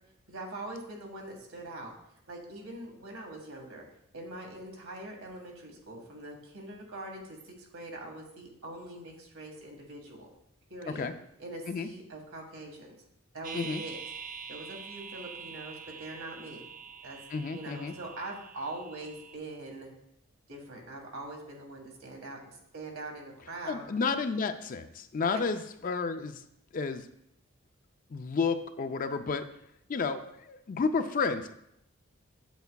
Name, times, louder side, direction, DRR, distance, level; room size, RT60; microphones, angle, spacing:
voice 1, 0.3-1.9 2.3-3.8 4.1-10.3 10.7-11.1 11.4-13.0 13.3-14.0 14.5-16.6 17.0-17.2 17.5-19.9 20.5-23.8 25.2-25.4, right 2 dB, 80° right, 1 dB, 1.6 m, -43 dB
sound 1, 13.4-19.4, right 6 dB, 40° right, 0.3 m, -45 dB
voice 2, 17.3-17.9 23.7-26.4 26.7-27.1 28.1-29.5 29.9-30.2 30.5-31.5, left 4 dB, 40° left, 9 dB, 0.4 m, -31 dB
8.0 x 7.9 x 2.3 m, 0.76 s
head